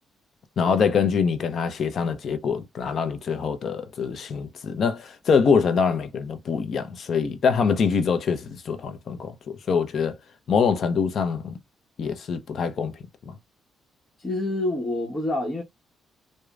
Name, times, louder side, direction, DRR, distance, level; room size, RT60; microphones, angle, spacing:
voice 1, 0.6-10.2 10.5-11.6 12.0-13.0 13.3-13.4, left 6 dB, 55° left, 0.6 m, -24 dB
voice 2, 14.2-15.6, left 1 dB, 25° left, 1.2 m, -27 dB
4.9 x 2.2 x 2.3 m
cardioid pair, 90°, 0 cm